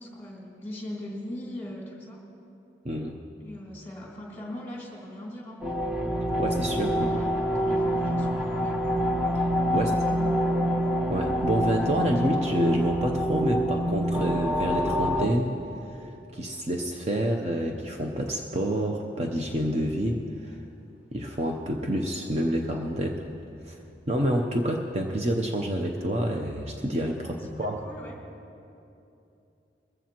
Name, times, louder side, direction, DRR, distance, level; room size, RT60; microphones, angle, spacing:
voice 1, 0.0-2.2 3.4-5.7 6.9-8.8 9.7-10.4 27.3-28.2, left 1 dB, 15° left, -4 dB, 2.8 m, -41 dB
voice 2, 2.8-3.2 6.4-7.1 9.7-9.9 11.1-15.5 16.0-16.1 16.3-20.6 21.1-23.2 23.6-23.8 24.1-27.8, right 1 dB, 35° right, 1 dB, 0.7 m, -28 dB
sound 1, 5.6-15.3, equal, 5° right, 1.1 m, -26 dB
21.0 x 15.0 x 3.0 m, 2.8 s
head